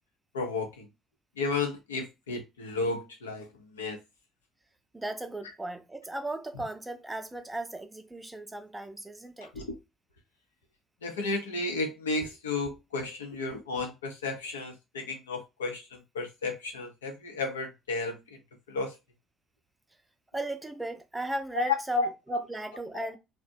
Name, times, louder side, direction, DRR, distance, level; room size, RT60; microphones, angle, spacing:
voice 1, 0.3-0.9 1.4-3.5 3.7-4.0 9.5-9.8 11.0-18.4 18.7-18.9 21.5-22.1 23.0-23.2, left 3 dB, 85° left, 0.6 m, -33 dB
voice 2, 4.9-9.5 20.3-23.2, right 2 dB, 15° right, 0.6 m, -36 dB
2.5 x 2.1 x 2.6 m
hypercardioid pair, 55°, 0 cm